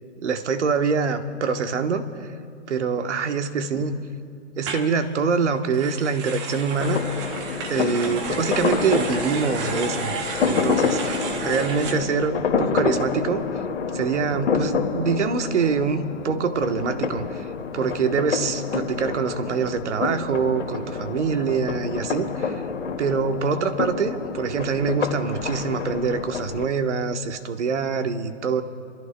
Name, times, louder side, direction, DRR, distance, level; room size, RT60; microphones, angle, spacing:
voice 1, 0.2-2.3 2.7-4.0 4.6-7.0 7.7-10.2 10.4-13.4 13.9-17.5 17.7-22.6 23.0-28.6, right 5 dB, 70° right, 8 dB, 1.2 m, -25 dB
sound 1, 4.6-4.9 5.6-11.9, right 4 dB, 25° right, 1.1 m, -33 dB
sound 2, 6.7-26.6, left 5 dB, 75° left, 2.1 m, -28 dB
29.0 x 14.0 x 2.2 m, 2.4 s
hypercardioid pair, 160°, 37 cm